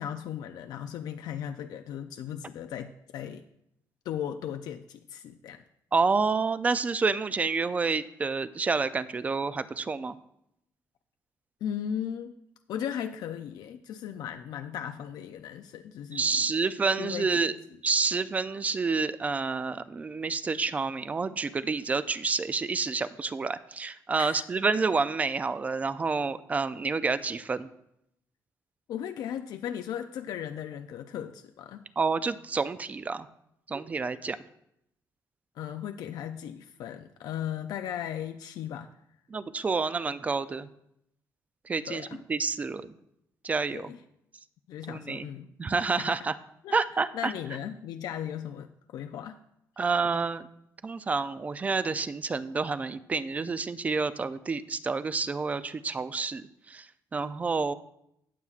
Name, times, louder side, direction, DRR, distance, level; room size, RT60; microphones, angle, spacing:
voice 1, 0.0-3.4 4.1-5.6 11.6-12.3 12.7-16.5 17.0-17.4 24.2-24.4 28.9-31.8 35.6-38.9 41.8-42.2 43.7-44.0 44.7-45.5 45.9-46.3 46.6-46.8 47.1-49.4, left 9 dB, 90° left, 7 dB, 0.4 m, -37 dB
voice 2, 5.9-10.1 16.1-17.5 17.8-27.7 32.0-33.3 33.7-34.4 39.3-40.7 41.7-42.9 43.4-43.9 44.9-45.3 45.6-46.4 46.7-47.3 49.8-50.5 50.8-57.7, right 4 dB, 20° right, 14 dB, 0.3 m, -29 dB
18.5 x 7.1 x 2.4 m, 0.78 s
cardioid pair, 165°, 7 cm